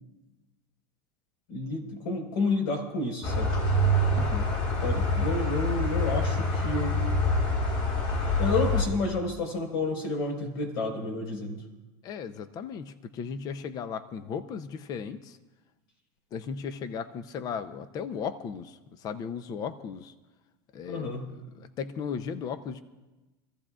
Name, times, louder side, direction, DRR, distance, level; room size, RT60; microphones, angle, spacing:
voice 1, 1.5-3.5 4.8-6.9 8.4-11.6 20.9-21.3, left 2 dB, 75° left, 1 dB, 4.6 m, -30 dB
sound 1, 3.2-8.8, left 1 dB, 55° left, 4.9 m, -26 dB
voice 2, 4.1-4.5 12.0-15.4 16.3-20.1 20.7-21.1 21.5-22.8, left 6 dB, 35° left, 12 dB, 0.7 m, -36 dB
26.0 x 15.0 x 2.5 m, 1.1 s
supercardioid pair, 145°, 12 cm